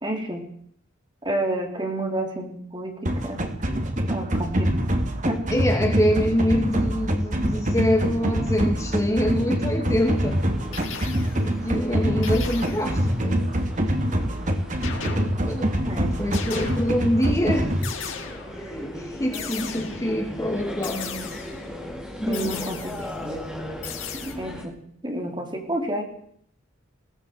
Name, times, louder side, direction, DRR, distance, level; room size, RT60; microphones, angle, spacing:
voice 1, 0.0-0.4 1.2-3.4 4.0-4.8 5.2-5.4 15.9-16.1 22.3-23.4 24.1-24.7 25.0-26.0, right 1 dB, 25° right, 2 dB, 4.2 m, -30 dB
sound 1, 3.0-17.8, equal, 40° right, 2.8 m, -25 dB
voice 2, 5.5-10.4 11.4-13.4 15.0-15.7 16.2-17.7 18.6-21.3 22.2-22.7, equal, 15° left, 2 dB, 2.7 m, -25 dB
sound 2, 10.0-24.6, left 1 dB, 5° right, 5.0 m, -38 dB
sound 3, 10.7-11.5 12.2-13.0 14.8-15.7 16.3-17.2 17.8-18.7 19.3-20.2 20.8-21.7 22.3-23.2 23.8-24.3, left 7 dB, 75° left, 3.9 m, -37 dB
20.5 x 17.5 x 8.1 m, 0.65 s
head